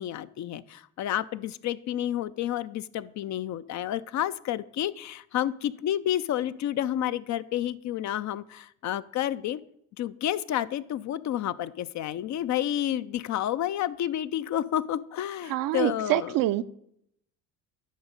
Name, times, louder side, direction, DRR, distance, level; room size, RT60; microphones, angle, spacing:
voice 1, 0.0-9.6 10.0-16.3, left 11 dB, 50° left, 0.5 m, -30 dB
voice 2, 15.5-16.6, right 14 dB, 65° right, 0.5 m, -26 dB
10.5 x 4.0 x 5.1 m
supercardioid pair, 65°, 36 cm